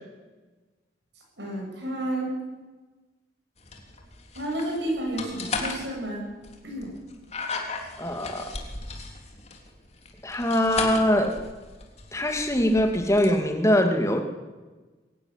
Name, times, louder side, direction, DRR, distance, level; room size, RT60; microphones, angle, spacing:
voice 1, 1.4-2.3 4.3-6.3 6.6-6.9, right 1 dB, 70° right, -2 dB, 7.7 m, -31 dB
sound 1, 3.6-13.3, left 4 dB, 35° left, 3.3 m, -36 dB
voice 2, 8.0-8.5 10.2-11.4 12.1-14.2, left 1 dB, 15° left, 5 dB, 2.5 m, -22 dB
22.5 x 16.5 x 9.9 m, 1.2 s
head